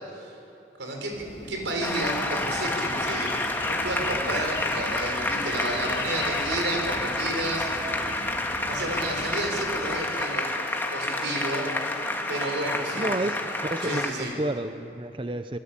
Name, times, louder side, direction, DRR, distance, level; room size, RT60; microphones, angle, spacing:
voice 1, 0.8-7.9 8.7-10.4 10.9-11.7 12.3-13.1 13.8-14.3, right 1 dB, 85° right, 2 dB, 5.9 m, -31 dB
sound 1, 1.1-10.0, left 1 dB, 30° left, 1.7 m, -42 dB
Applause, 1.8-14.1, left 2 dB, 10° left, 1.9 m, -29 dB
sound 2, 2.7-9.3, left 3 dB, 65° left, 4.1 m, -40 dB
voice 2, 12.9-13.4 13.7-15.6, right 1 dB, 25° right, 9 dB, 0.7 m, -30 dB
27.5 x 21.0 x 8.8 m, 2.7 s
head